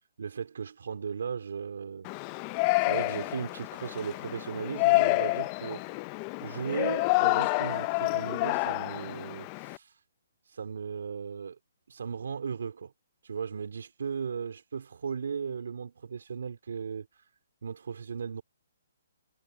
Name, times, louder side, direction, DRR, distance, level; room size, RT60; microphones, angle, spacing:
voice 1, 0.2-2.1 2.8-5.8 6.4-9.9 10.5-11.6 11.9-12.9 13.2-17.1 17.6-18.4, right 6 dB, 75° right, 3.1 m, -36 dB
Yell, 2.1-9.8, left 24 dB, 25° left, 0.6 m, -28 dB
hypercardioid pair, 155°, 0 cm